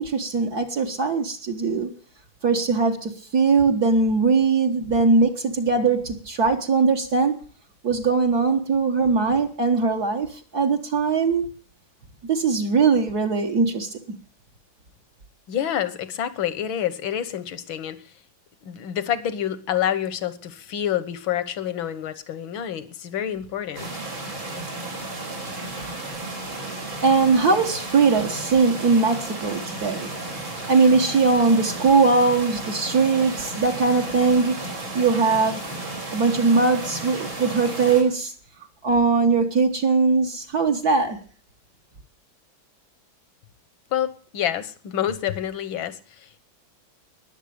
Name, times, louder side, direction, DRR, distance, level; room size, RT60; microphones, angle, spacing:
voice 1, 0.0-1.9 2.4-7.4 7.8-11.5 12.3-14.0 27.0-30.1 30.7-34.6 35.0-35.6 36.1-38.3 38.8-41.2, right 4 dB, 55° right, 2 dB, 1.8 m, -20 dB
voice 2, 15.5-18.1 18.7-23.9 43.9-46.4, left 10 dB, 80° left, 15 dB, 1.9 m, -28 dB
sound 1, 23.7-38.0, right 2 dB, 80° right, 5.3 m, -33 dB
20.0 x 7.3 x 8.6 m, 0.43 s
omnidirectional pair, 2.1 m